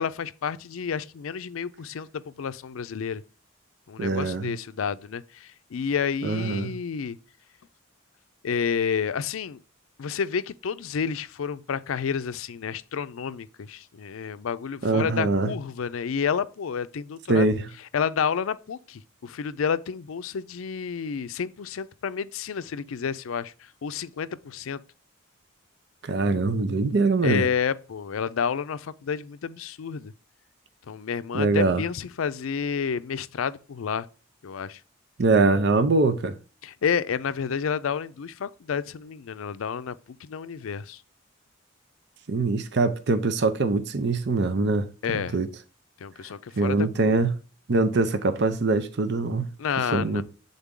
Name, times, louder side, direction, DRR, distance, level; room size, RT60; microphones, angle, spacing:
voice 1, 0.0-3.2 3.9-7.2 8.4-9.6 10.0-17.5 17.9-23.5 23.8-24.8 27.2-30.1 30.9-34.1 34.4-34.8 36.6-41.0 45.0-45.4 46.0-47.2 49.6-50.2, left 6 dB, 85° left, 0.4 m, -30 dB
voice 2, 4.0-4.5 6.2-6.8 14.8-15.5 17.3-17.6 26.0-27.5 31.3-31.8 35.2-36.3 42.3-45.5 46.6-47.4 47.7-49.5 49.9-50.2, right 3 dB, 55° right, 0.6 m, -23 dB
8.2 x 3.9 x 3.7 m
head